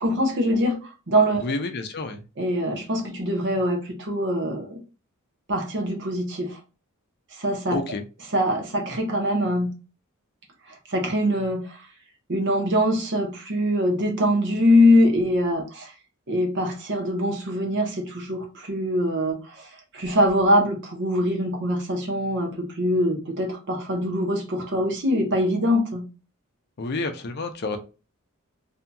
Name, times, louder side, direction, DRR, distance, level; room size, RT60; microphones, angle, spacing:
voice 1, 0.0-1.4 2.4-4.8 5.5-6.6 7.3-7.8 8.3-9.7 10.9-11.8 12.3-15.9 16.3-26.0, equal, 55° right, 0.9 m, -23 dB
voice 2, 1.4-2.2 7.7-8.0 26.8-27.8, left 3 dB, 50° left, 0.5 m, -29 dB
2.7 x 2.7 x 2.2 m
head